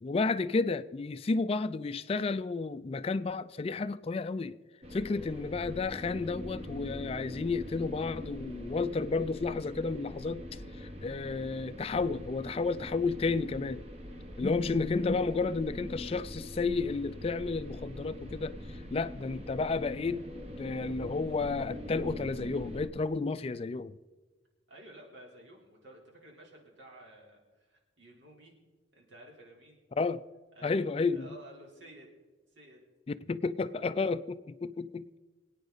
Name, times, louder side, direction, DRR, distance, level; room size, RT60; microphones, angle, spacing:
voice 1, 0.0-4.6 4.9-13.8 14.4-20.2 20.6-24.0 30.0-30.2 30.6-31.3 33.3-35.2, left 4 dB, 30° left, 0.3 m, -32 dB
sound 1, 4.8-22.9, left 1 dB, 35° right, 1.3 m, -43 dB
voice 2, 14.1-14.4 24.7-28.6 28.9-29.8 30.5-32.1 32.5-32.8 33.8-33.9, right 1 dB, 75° right, 3.8 m, -53 dB
24.0 x 9.0 x 4.0 m
head